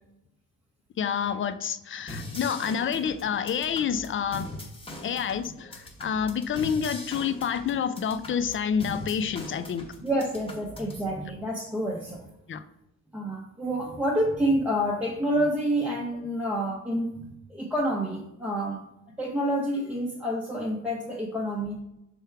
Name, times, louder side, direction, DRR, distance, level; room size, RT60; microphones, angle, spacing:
voice 1, 1.0-4.5 5.0-9.9 12.5-12.6, left 7 dB, 40° left, 11 dB, 0.4 m, -28 dB
sound 1, 2.1-11.0, left 1 dB, 15° left, 1.1 m, -41 dB
voice 2, 10.0-12.3 13.1-18.8 19.2-21.8, equal, 5° right, -4 dB, 0.8 m, -28 dB
6.0 x 3.5 x 4.5 m, 0.87 s
cardioid pair, 155°, 33 cm